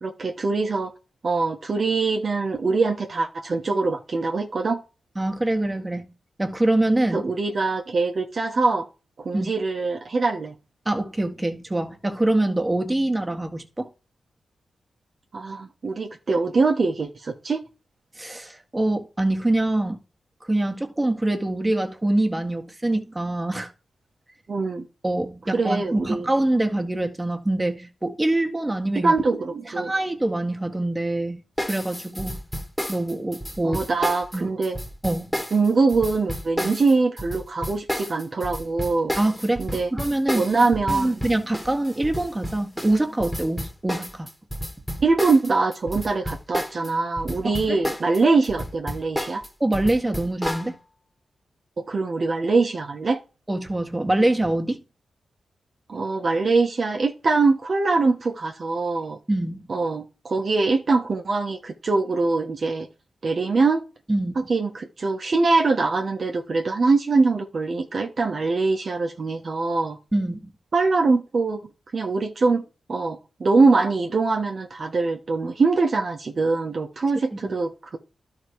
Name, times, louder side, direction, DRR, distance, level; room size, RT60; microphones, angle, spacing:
voice 1, 0.0-0.9 1.2-4.8 7.1-8.9 9.2-10.5 15.3-17.6 24.5-24.9 25.5-26.3 28.9-29.9 33.6-34.8 35.5-39.1 39.6-39.9 40.3-41.2 45.0-49.4 51.8-53.2 55.9-59.2 59.7-62.9 63.2-63.8 64.3-70.0 70.7-71.6 71.9-72.6 72.9-78.0, right 3 dB, 55° right, 1.2 m, -23 dB
voice 2, 5.1-6.0 6.4-7.3 9.3-9.5 10.8-13.9 18.2-20.0 20.5-23.7 25.0-29.2 29.8-32.4 32.9-33.9 34.3-34.5 35.0-35.4 36.6-36.7 39.2-40.5 40.9-44.3 47.4-47.8 49.6-50.8 53.5-54.8 59.3-59.7 64.1-64.4 70.1-70.5 77.3-77.5, right 1 dB, 20° right, 1.7 m, -24 dB
sound 1, 31.6-46.9 47.2-50.7, equal, 5° left, 1.8 m, -31 dB
12.0 x 4.0 x 4.7 m
supercardioid pair, 45°, 0 cm